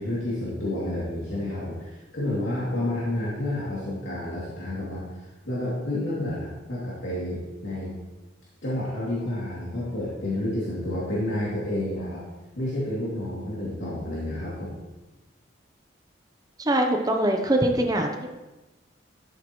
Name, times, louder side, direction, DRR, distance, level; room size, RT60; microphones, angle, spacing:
voice 1, 0.0-8.0 8.6-12.2 12.5-14.8, left 1 dB, 75° left, -8 dB, 2.8 m, -30 dB
voice 2, 16.6-18.3, right 1 dB, 20° right, 3 dB, 0.9 m, -23 dB
13.5 x 7.7 x 3.2 m, 1.1 s
head